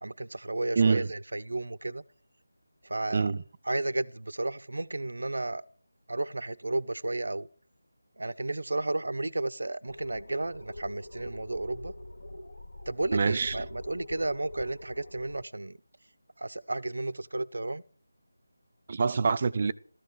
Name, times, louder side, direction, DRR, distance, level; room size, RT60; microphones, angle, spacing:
voice 1, 0.0-2.0 2.8-3.3 3.6-5.7 6.1-7.5 8.2-11.9 12.9-15.8 16.4-17.8, right 2 dB, 75° right, 0.8 m, -33 dB
voice 2, 0.8-1.1 3.1-3.4 13.1-13.6 18.9-19.7, right 5 dB, 40° right, 0.8 m, -25 dB
sound 1, 9.9-15.4, left 1 dB, 75° left, 3.1 m, -44 dB
14.5 x 14.0 x 6.4 m
figure-of-eight pair, 165°, 0 cm